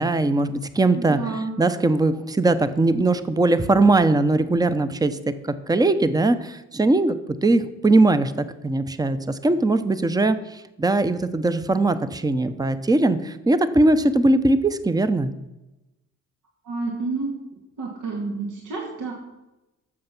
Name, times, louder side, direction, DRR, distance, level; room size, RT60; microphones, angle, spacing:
voice 1, 0.0-1.2 1.6-5.2 5.4-7.2 7.4-8.3 8.6-15.3, right 2 dB, 10° right, 12 dB, 0.8 m, -20 dB
voice 2, 1.0-1.5 16.6-17.3 17.8-19.1, right 3 dB, 75° right, -2 dB, 2.4 m, -29 dB
13.5 x 6.7 x 6.0 m, 0.99 s
cardioid pair, 90°, 30 cm